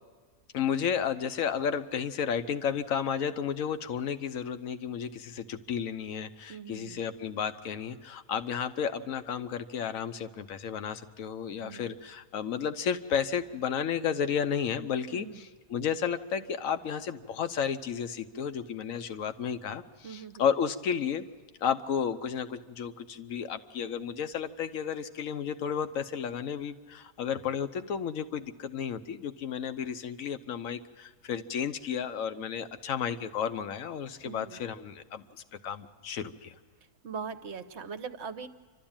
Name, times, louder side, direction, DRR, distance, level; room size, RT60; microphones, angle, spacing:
voice 1, 0.5-21.2 21.6-36.5, left 7 dB, 70° left, 11 dB, 1.2 m, -32 dB
voice 2, 6.5-7.0 11.6-11.9 15.1-15.4 20.0-20.5 34.2-34.6 37.0-38.5, right 6 dB, 55° right, 10 dB, 1.0 m, -41 dB
28.0 x 12.5 x 8.8 m, 1.4 s
omnidirectional pair, 1.5 m